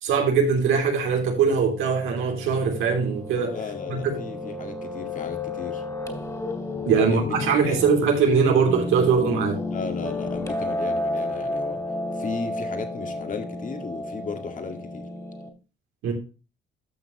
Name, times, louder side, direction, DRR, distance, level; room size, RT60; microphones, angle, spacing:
voice 1, 0.0-3.6 3.9-4.2 6.8-9.6 16.0-16.1, right 5 dB, 90° right, 3.1 m, -21 dB
Piano, 1.0-15.5, left 2 dB, 15° left, 2.6 m, -32 dB
voice 2, 3.5-5.8 6.9-7.3 7.6-7.9 9.7-11.8 12.1-15.1, left 4 dB, 40° left, 2.0 m, -35 dB
13.5 x 5.9 x 3.0 m
cardioid pair, 90°, 20 cm